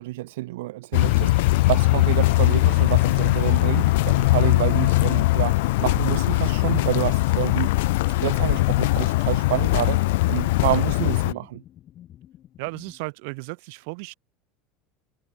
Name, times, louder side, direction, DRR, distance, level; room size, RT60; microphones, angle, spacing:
voice 1, 0.0-11.6, right 18 dB, 90° right, 0.5 m, -28 dB
sound 1, 0.9-11.3, left 20 dB, 80° left, 0.4 m, -20 dB
sound 2, 1.0-13.0, left 12 dB, 35° left, 1.1 m, -46 dB
voice 2, 12.6-14.1, right 31 dB, 65° right, 2.9 m, -35 dB
supercardioid pair, 150°, 0 cm